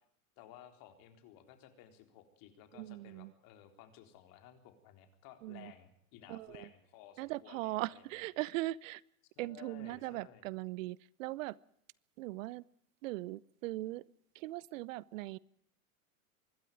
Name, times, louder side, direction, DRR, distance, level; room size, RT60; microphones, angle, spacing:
voice 1, 0.4-8.2 9.4-10.5, left 10 dB, 55° left, 7 dB, 3.9 m, -56 dB
voice 2, 2.7-3.3 5.4-5.7 6.3-6.7 7.2-9.0 9.4-11.6 12.2-12.6 13.0-14.0 14.3-15.4, right 18 dB, 65° right, 24 dB, 0.8 m, -39 dB
24.5 x 12.0 x 9.4 m, 0.71 s
hypercardioid pair, 100°, 42 cm